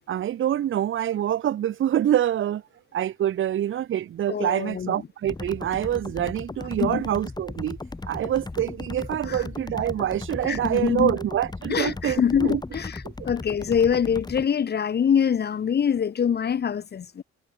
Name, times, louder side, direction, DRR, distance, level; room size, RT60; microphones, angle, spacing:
voice 1, 0.1-2.6 2.9-7.8 8.1-12.6 13.0-13.1, right 11 dB, 45° right, 0.5 m, -26 dB
voice 2, 4.3-5.0 6.8-7.0 9.3-9.4 10.5-11.2 11.7-13.0 13.2-17.2, left 7 dB, 35° left, 0.6 m, -24 dB
sound 1, 5.3-14.5, left 3 dB, 15° left, 1.0 m, -37 dB
cardioid pair, 90°, 30 cm